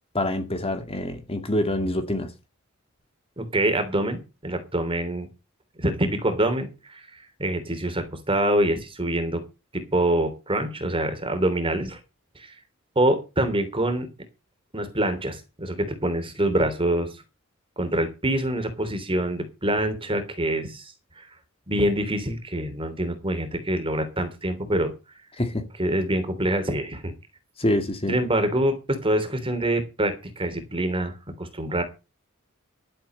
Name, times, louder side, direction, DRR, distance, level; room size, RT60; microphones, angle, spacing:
voice 1, 0.1-2.3 25.4-25.6 27.6-28.1, left 1 dB, 30° left, 2.0 m, -26 dB
voice 2, 3.4-5.3 5.8-9.4 9.7-12.0 12.3-12.5 12.9-14.1 14.7-17.1 17.8-21.3 21.7-24.9 25.8-27.1 28.1-31.8, right 1 dB, 25° right, 3.1 m, -25 dB
12.5 x 7.8 x 6.6 m
head